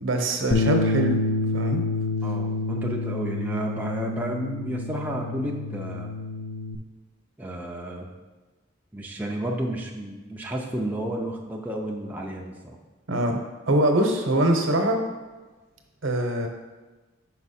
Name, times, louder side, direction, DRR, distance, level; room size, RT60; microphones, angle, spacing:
voice 1, 0.0-1.2 1.5-1.8 13.1-13.4 13.7-15.0 16.0-16.5, right 1 dB, 70° right, 4 dB, 0.9 m, -23 dB
Bass guitar, 0.5-6.8, left 2 dB, 55° left, 0.4 m, -28 dB
voice 2, 2.2-6.1 7.4-8.1 8.9-12.8, right 1 dB, 10° right, -1 dB, 0.5 m, -31 dB
5.9 x 4.7 x 4.2 m, 1.2 s
head